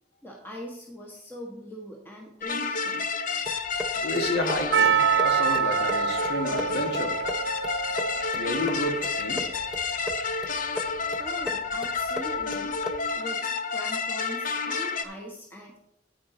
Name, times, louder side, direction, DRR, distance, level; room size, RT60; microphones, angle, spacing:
voice 1, 0.2-3.1 11.2-12.8 13.1-15.8, equal, 10° left, -1 dB, 1.3 m, -42 dB
sound 1, 2.4-15.0, left 4 dB, 50° left, 0.9 m, -30 dB
sound 2, 3.4-13.2, equal, 5° right, 0.6 m, -39 dB
voice 2, 4.0-7.5 8.3-9.5, left 1 dB, 65° left, 3 dB, 1.9 m, -31 dB
Percussion, 4.7-9.6, right 8 dB, 80° right, 0.6 m, -27 dB
9.3 x 9.2 x 3.9 m, 0.76 s
head